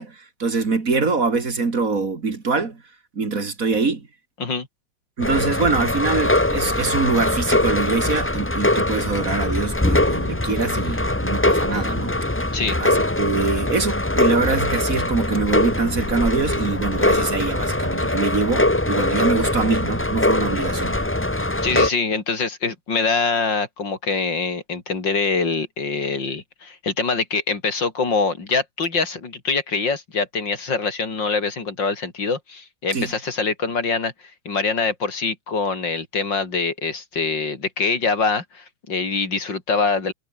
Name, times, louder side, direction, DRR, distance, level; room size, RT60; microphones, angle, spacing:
voice 1, 0.0-2.8 3.1-4.1 5.2-12.3 12.8-21.0 32.9-33.1, right 4 dB, 50° right, 2.9 m, -24 dB
sound 1, 5.2-21.9, left 1 dB, 10° left, 0.9 m, -22 dB
voice 2, 21.6-34.1 34.5-40.1, left 4 dB, 80° left, 4.2 m, -24 dB
omnidirectional pair, 2.0 m